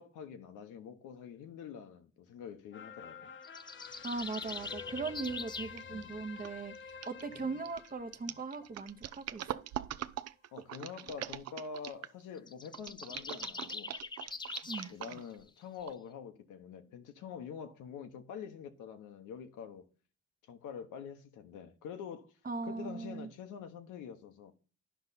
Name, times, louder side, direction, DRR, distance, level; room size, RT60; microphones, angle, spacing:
voice 1, 0.0-3.3 5.9-6.2 7.3-7.6 10.5-13.9 14.9-19.9 20.5-22.4 22.6-24.5, left 7 dB, 85° left, 1.0 m, -46 dB
sound 1, 2.7-9.4 9.8-9.9, left 6 dB, 40° left, 0.8 m, -49 dB
sound 2, 3.4-5.8 12.4-14.9, left 4 dB, 15° left, 0.3 m, -43 dB
voice 2, 4.0-9.4 14.7-14.9 22.4-23.3, right 4 dB, 30° right, 0.9 m, -39 dB
sound 3, 5.8-6.0 6.4-12.2 12.7-15.4 15.9-16.0, right 12 dB, 60° right, 0.5 m, -42 dB
10.5 x 5.4 x 4.0 m
cardioid pair, 90°, 30 cm